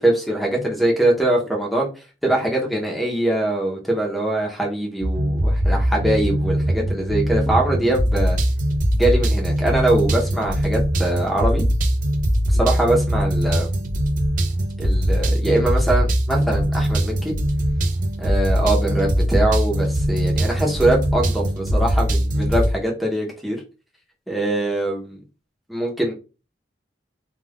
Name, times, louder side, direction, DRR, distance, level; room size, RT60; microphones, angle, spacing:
voice 1, 0.0-1.9 2.2-8.4 8.9-11.6 12.5-13.7 14.8-17.3 18.2-23.6 24.3-25.2 25.7-26.1, right 1 dB, ahead, 0.7 m, -22 dB
sound 1, 5.0-22.7, equal, 45° right, 0.4 m, -21 dB
3.4 x 2.3 x 2.3 m
head